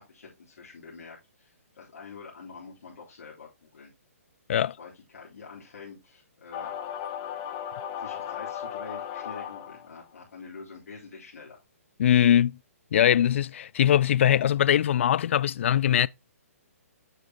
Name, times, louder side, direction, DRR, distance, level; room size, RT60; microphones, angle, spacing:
voice 1, 0.0-3.9 4.8-6.8 7.2-7.6 8.0-11.6, left 5 dB, 75° left, 3.7 m, -46 dB
sound 1, 6.5-10.0, left 9 dB, 25° left, 1.0 m, -36 dB
voice 2, 12.0-12.6 12.9-16.1, left 10 dB, 50° left, 0.3 m, -21 dB
8.3 x 6.5 x 2.9 m
hypercardioid pair, 155°, 8 cm